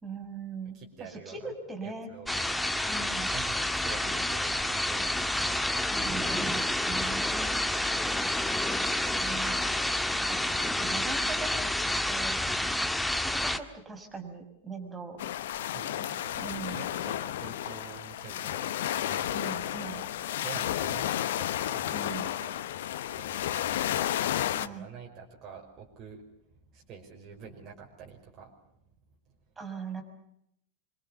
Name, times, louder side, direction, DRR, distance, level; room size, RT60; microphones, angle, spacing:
voice 1, 0.0-2.1 2.9-3.3 5.9-7.6 9.2-9.6 10.1-12.4 13.2-15.2 16.4-16.9 19.3-20.0 21.9-22.3 24.5-24.9 29.6-30.0, right 4 dB, 15° right, 4 dB, 6.4 m, -40 dB
voice 2, 0.7-1.5 1.8-2.6 3.2-6.1 7.3-8.7 12.5-13.0 15.6-20.1 20.3-22.7 23.1-26.3 26.5-28.9 29.3-29.4, right 7 dB, 30° right, -1 dB, 5.6 m, -48 dB
sound 1, 2.3-13.6, left 1 dB, 5° left, 1.5 m, -29 dB
sound 2, 15.2-24.7, left 12 dB, 55° left, 1.1 m, -32 dB
26.0 x 26.0 x 7.1 m, 0.76 s
figure-of-eight pair, 90°, 0 cm